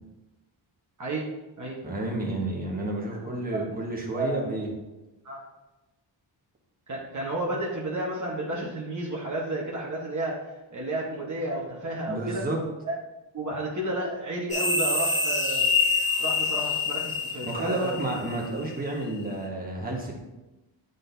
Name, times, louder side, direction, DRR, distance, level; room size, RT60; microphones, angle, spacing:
voice 1, 1.0-1.3 1.6-1.8 3.2-3.7 4.2-4.4 5.2-5.4 6.9-12.4 12.8-13.0 13.3-15.7 16.2-18.0, right 1 dB, 35° right, -4 dB, 1.2 m, -32 dB
voice 2, 1.8-4.7 12.1-12.6 17.4-20.2, right 2 dB, 20° right, -2 dB, 1.4 m, -30 dB
sound 1, 14.5-18.7, left 4 dB, 15° left, 1.2 m, -26 dB
8.7 x 4.0 x 2.7 m, 1.0 s
cardioid pair, 85°, 48 cm